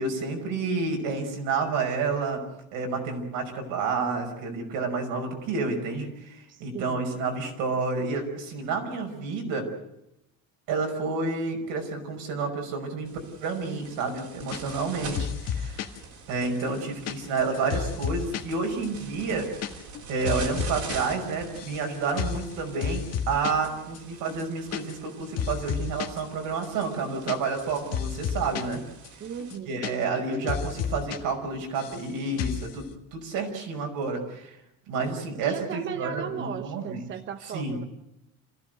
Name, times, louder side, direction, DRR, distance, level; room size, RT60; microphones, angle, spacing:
voice 1, 0.0-2.4 2.7-9.7 10.7-13.1 13.4-15.9 16.3-19.5 20.1-28.8 29.7-34.6 34.9-37.0 37.5-37.8, right 4 dB, 75° right, 3 dB, 5.8 m, -30 dB
voice 2, 6.5-7.0 29.2-29.9 35.4-37.8, right 9 dB, 35° right, 8 dB, 1.0 m, -36 dB
sound 1, 13.0-29.6, right 4 dB, 60° right, 4.4 m, -44 dB
sound 2, 14.5-14.9 15.1-16.0 16.4-18.5 18.8-18.9 19.2-19.7 19.9-21.0 21.2-21.8 22.2-22.5 22.8-23.7 23.9-24.0 24.3-25.1 25.4-26.2 26.6-28.8 29.0-29.1 29.4-30.2 30.5-31.2 31.4-32.1 32.4-32.7, left 8 dB, 50° left, 1.7 m, -32 dB
27.5 x 15.5 x 7.9 m, 0.85 s
cardioid pair, 180°, 33 cm